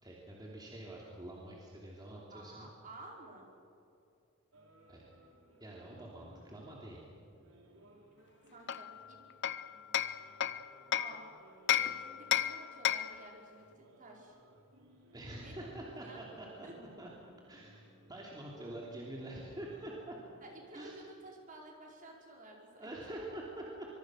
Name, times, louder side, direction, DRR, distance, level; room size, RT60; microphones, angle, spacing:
voice 1, 0.0-2.7 4.9-5.0 5.6-7.0 15.1-17.1 17.5-17.8 18.1-20.2 20.7-20.9 22.8-23.9, right 1 dB, 20° right, -3 dB, 3.2 m, -46 dB
voice 2, 2.3-3.5 8.5-9.2 10.9-11.2 11.8-14.4 15.4-16.2 16.6-16.7 20.4-22.9, right 2 dB, 40° right, 0 dB, 5.0 m, -52 dB
sound 1, 4.5-20.6, right 1 dB, 80° right, 4.5 m, -62 dB
Hammer, 8.7-11.2 11.7-13.3, left 11 dB, 55° left, 0.7 m, -33 dB
24.5 x 24.0 x 6.5 m, 2.8 s
head